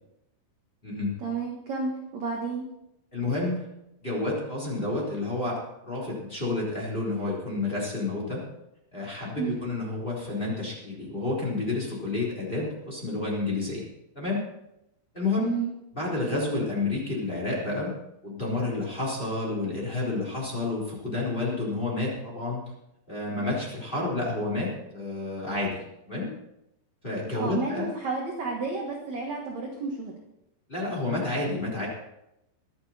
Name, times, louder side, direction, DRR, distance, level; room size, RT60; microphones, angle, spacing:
voice 1, 1.2-2.7 9.4-9.6 15.4-15.7 27.3-30.1, right 4 dB, 60° right, 0 dB, 2.0 m, -31 dB
voice 2, 3.1-3.7 4.0-8.4 8.9-13.8 14.1-14.4 15.1-15.5 15.9-17.9 18.2-22.6 23.1-26.3 27.0-27.9 30.7-31.9, left 2 dB, 15° left, -3 dB, 3.3 m, -30 dB
22.5 x 8.7 x 4.3 m, 0.86 s
omnidirectional pair, 5.2 m